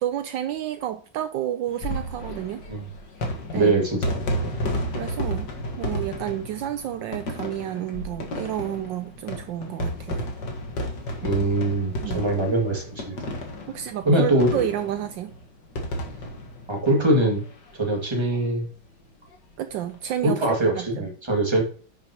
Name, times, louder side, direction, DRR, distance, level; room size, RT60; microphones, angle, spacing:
voice 1, 0.0-2.6 3.5-3.8 4.9-5.5 5.8-10.3 12.0-12.3 13.7-15.3 19.6-21.1, right 11 dB, 75° right, 1.3 m, -30 dB
sound 1, 1.7-17.7 18.0-18.1 18.3-18.4 19.7-20.0, equal, 60° left, 2.2 m, -32 dB
voice 2, 3.5-4.5 11.2-13.2 14.1-14.6 16.7-17.4 17.7-18.6 20.2-21.6, right 1 dB, 15° right, 2.1 m, -23 dB
10.5 x 7.1 x 3.0 m
omnidirectional pair, 2.1 m